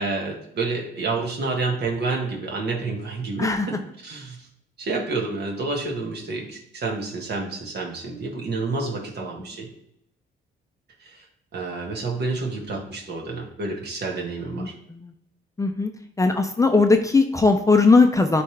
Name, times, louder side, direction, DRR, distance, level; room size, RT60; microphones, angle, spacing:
voice 1, 0.0-4.5 4.8-9.7 11.0-11.3 11.5-14.7, right 3 dB, 55° right, 0 dB, 1.6 m, -29 dB
voice 2, 14.5-15.1 15.6-15.9 16.2-18.4, left 3 dB, 15° left, 5 dB, 0.5 m, -19 dB
10.0 x 3.4 x 3.3 m, 0.75 s
cardioid pair, 90°, 20 cm